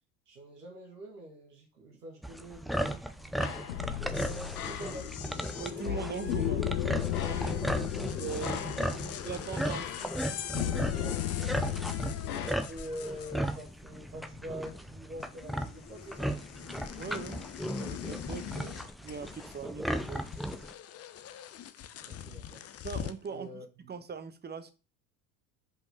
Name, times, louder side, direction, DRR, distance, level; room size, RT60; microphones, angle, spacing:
voice 1, 0.3-3.9 4.2-5.2 8.4-8.6 9.0-9.6 10.9-11.5 12.2-16.3 22.0-22.6 23.3-23.9, right 1 dB, 80° right, 1.7 m, -45 dB
sound 1, 2.2-20.7, equal, ahead, 0.4 m, -36 dB
sound 2, 3.4-12.5, left 11 dB, 70° left, 1.1 m, -35 dB
sound 3, 4.1-13.9 14.2-14.9 15.2-23.3, left 10 dB, 30° left, 0.8 m, -44 dB
voice 2, 5.6-6.8 7.2-7.7 8.2-8.8 9.2-9.9 17.0-17.4 17.8-20.3 22.8-23.5 23.9-24.7, right 6 dB, 20° right, 1.1 m, -40 dB
5.7 x 5.4 x 6.6 m
figure-of-eight pair, 65°, 46 cm